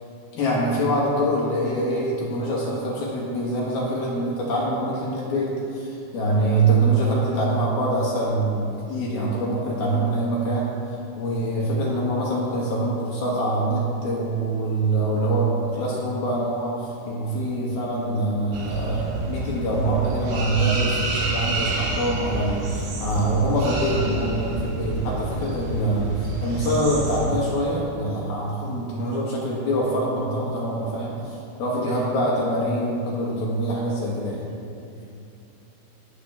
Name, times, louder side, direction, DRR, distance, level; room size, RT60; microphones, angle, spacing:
voice 1, 0.3-10.8 11.2-34.4, right 1 dB, 65° left, -5 dB, 3.0 m, -24 dB
voice 2, 6.3-6.7 11.6-11.7 28.9-29.2 31.8-32.3 34.2-35.2, left 1 dB, 30° right, -9 dB, 2.0 m, -45 dB
sound 1, 18.5-27.3, right 2 dB, 65° right, 3.8 m, -29 dB
20.0 x 8.0 x 3.5 m, 2.6 s
omnidirectional pair, 5.4 m